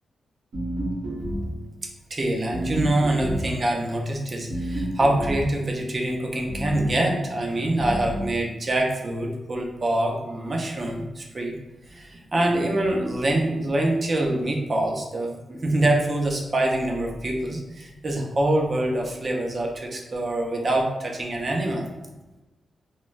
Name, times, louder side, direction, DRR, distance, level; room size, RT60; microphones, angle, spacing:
sound 1, 0.5-1.7 2.5-3.6 4.5-5.6 6.5-7.0 7.8-8.4, right 1 dB, 90° right, 1.1 m, -30 dB
voice 1, 2.1-11.6 11.9-21.9, right 1 dB, 40° right, 1 dB, 0.5 m, -25 dB
3.1 x 2.2 x 2.4 m, 1.1 s
wide cardioid pair, 105°, 0 cm